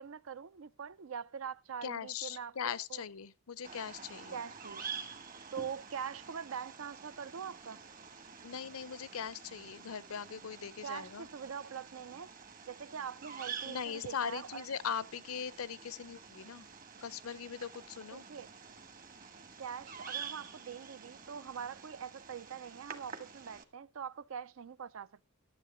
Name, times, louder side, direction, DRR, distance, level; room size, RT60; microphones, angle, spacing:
voice 1, 0.0-2.6 2.9-3.0 4.3-4.9 5.5-7.8 10.8-12.3 12.7-14.6 18.1-18.5 19.6-25.2, right 7 dB, 70° right, 0.5 m, -43 dB
voice 2, 1.8-4.4 8.4-11.3 13.6-16.7 17.0-18.3, left 7 dB, 85° left, 0.6 m, -40 dB
Bird vocalization bird call bird song, 3.6-23.6, right 6 dB, 40° right, 1.4 m, -48 dB
12.5 x 7.6 x 5.0 m
head